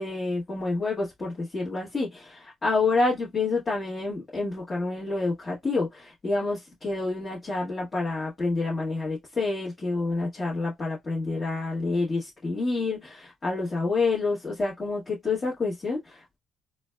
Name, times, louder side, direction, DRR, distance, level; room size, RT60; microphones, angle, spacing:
voice 1, 0.0-16.4, left 3 dB, 30° left, 1.4 m, -28 dB
3.9 x 2.2 x 2.2 m
cardioid pair, 90°, 0 cm